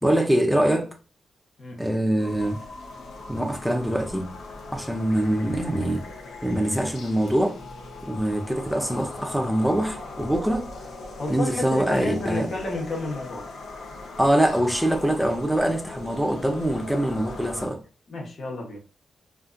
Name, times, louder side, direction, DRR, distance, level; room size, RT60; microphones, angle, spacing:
voice 1, 0.0-0.9 1.8-2.6 3.3-4.3 4.7-6.1 6.4-7.6 8.0-10.7 11.3-12.5 14.2-17.8, right 1 dB, ahead, 0.6 m, -24 dB
sound 1, 2.2-17.7, left 2 dB, 85° left, 0.8 m, -40 dB
voice 2, 11.1-13.5 18.1-18.8, left 2 dB, 55° left, 0.9 m, -31 dB
2.6 x 2.5 x 2.5 m
cardioid pair, 85°, 0 cm